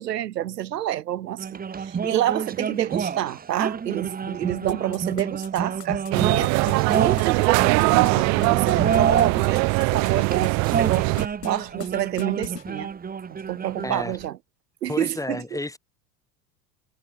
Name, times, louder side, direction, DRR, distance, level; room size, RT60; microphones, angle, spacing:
voice 1, 0.0-6.5 6.9-11.1 11.4-12.9 13.3-14.4 14.8-15.4, right 12 dB, 80° right, 0.6 m, -28 dB
sound 1, 1.4-9.5 10.2-14.3, right 6 dB, 20° right, 1.7 m, -29 dB
sound 2, 4.7-10.5 10.8-11.5 11.8-11.9 12.2-12.6, left 8 dB, 75° left, 2.6 m, -37 dB
sound 3, 6.1-11.3, right 30 dB, 35° right, 0.6 m, -21 dB
voice 2, 13.8-14.2 14.9-15.8, left 2 dB, 5° left, 3.6 m, -31 dB
figure-of-eight pair, 75°, 48 cm